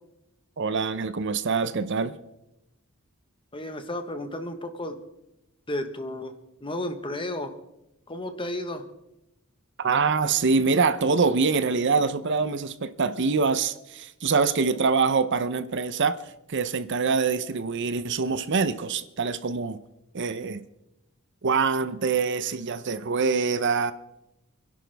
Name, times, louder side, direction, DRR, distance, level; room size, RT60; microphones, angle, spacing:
voice 1, 0.6-2.2 9.8-16.2 16.5-19.8 20.1-20.6 21.4-23.9, right 4 dB, 55° right, 0.7 m, -24 dB
voice 2, 3.5-5.0 5.7-6.3 6.6-7.6 8.1-8.8, left 1 dB, 25° left, 1.2 m, -32 dB
28.5 x 11.0 x 3.5 m
head